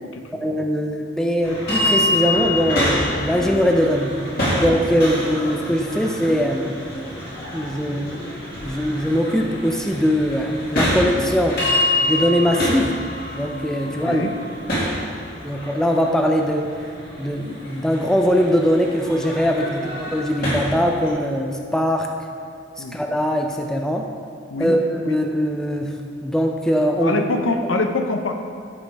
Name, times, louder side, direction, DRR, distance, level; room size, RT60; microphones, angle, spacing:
voice 1, 0.4-4.2 4.6-6.8 7.5-11.6 12.1-13.0 13.3-14.3 15.4-16.6 17.2-22.1 22.9-24.1 24.6-27.2, equal, 5° left, 2 dB, 0.4 m, -21 dB
sound 1, 1.4-21.1, left 1 dB, 50° left, 2.2 m, -26 dB
voice 2, 13.8-14.3 22.8-23.0 24.5-24.7 25.0-25.2 27.0-28.3, left 2 dB, 85° left, 5 dB, 0.8 m, -24 dB
13.5 x 5.3 x 3.4 m, 2.2 s
head